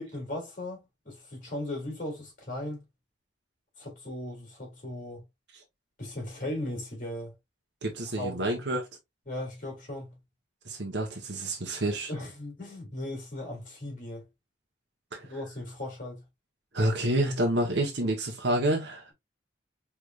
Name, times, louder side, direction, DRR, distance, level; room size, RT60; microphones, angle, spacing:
voice 1, 0.0-2.8 3.8-5.2 6.0-7.3 7.9-8.4 9.3-10.1 11.7-11.8 12.1-14.2 15.3-16.2, left 1 dB, 45° left, 3.0 m, -37 dB
voice 2, 7.8-8.9 10.7-12.1 15.1-15.3 16.7-19.1, right 1 dB, 75° right, 1.1 m, -28 dB
4.8 x 3.5 x 2.4 m
head